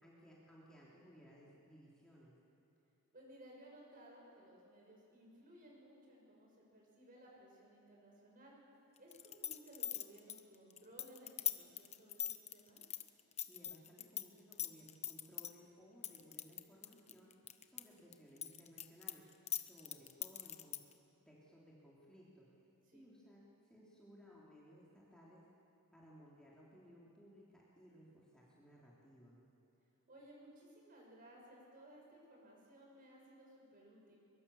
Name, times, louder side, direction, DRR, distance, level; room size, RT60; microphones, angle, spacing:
voice 1, 0.0-2.3 13.5-17.3 17.7-19.3 19.6-20.9 21.3-22.5 22.9-25.5 25.9-29.4, equal, 5° left, -6 dB, 3.5 m, -61 dB
voice 2, 3.1-8.6 9.0-12.8 22.9-23.1 30.1-34.2, right 1 dB, 40° right, -2 dB, 6.3 m, -59 dB
sound 1, 9.1-14.2 14.5-15.5 16.0-17.8 18.1-20.9, left 10 dB, 30° left, 0.9 m, -41 dB
23.0 x 23.0 x 7.3 m, 3.0 s
head